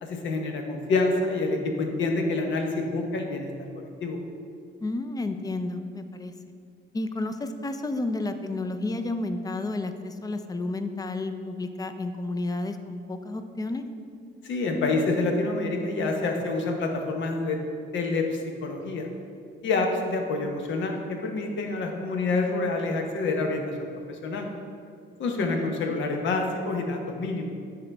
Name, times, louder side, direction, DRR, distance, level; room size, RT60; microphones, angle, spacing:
voice 1, 0.0-3.5 3.8-4.2 14.4-17.6 17.9-19.1 19.6-24.5 25.2-27.5, left 3 dB, 70° left, 3 dB, 0.9 m, -27 dB
voice 2, 4.8-6.3 6.9-13.8 25.4-25.8, left 2 dB, 20° left, 8 dB, 0.4 m, -31 dB
10.0 x 3.9 x 3.3 m, 2.2 s
cardioid pair, 90°, 20 cm